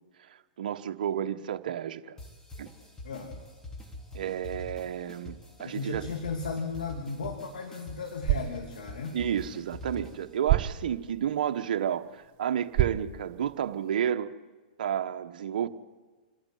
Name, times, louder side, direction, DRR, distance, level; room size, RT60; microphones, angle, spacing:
voice 1, 0.6-2.2 2.6-2.7 4.1-6.0 9.1-14.3 14.8-15.7, right 9 dB, 70° right, 1.2 m, -31 dB
sound 1, 2.2-10.4, left 1 dB, 10° left, 3.7 m, -45 dB
voice 2, 5.6-9.2, left 4 dB, 80° left, 2.9 m, -35 dB
sound 2, 8.1-14.1, right 15 dB, 40° right, 1.1 m, -33 dB
27.0 x 12.0 x 9.3 m
hypercardioid pair, 125°, 5 cm